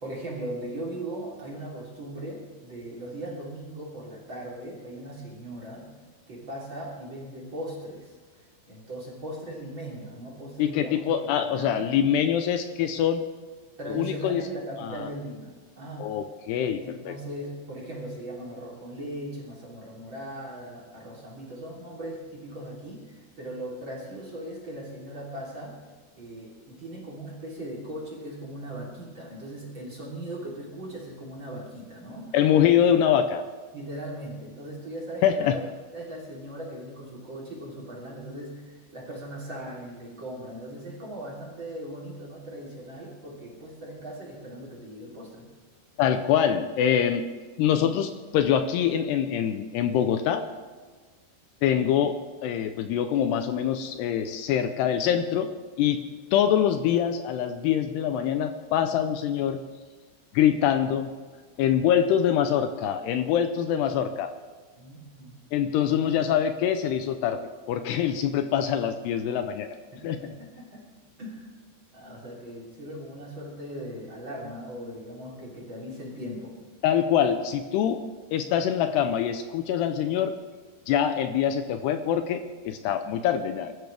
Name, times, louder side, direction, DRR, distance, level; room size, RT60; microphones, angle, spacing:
voice 1, 0.0-5.9 6.3-8.1 8.7-11.9 13.8-16.1 16.8-25.8 26.2-32.4 33.7-35.6 35.9-45.5 64.8-65.3 69.9-70.9 71.2-71.5 71.9-76.6, right 1 dB, 30° right, -3 dB, 3.5 m, -39 dB
voice 2, 10.6-13.2 13.9-14.4 14.8-15.1 16.0-17.1 32.3-33.4 35.2-35.6 46.0-47.2 47.6-50.4 51.6-55.5 55.8-56.1 56.3-59.6 60.3-61.1 61.6-64.3 65.5-67.4 67.7-69.7 70.0-70.2 76.8-78.0 78.3-80.3 80.9-83.7, left 9 dB, 80° left, 8 dB, 2.6 m, -24 dB
24.0 x 13.5 x 3.5 m, 1.4 s
omnidirectional pair, 5.3 m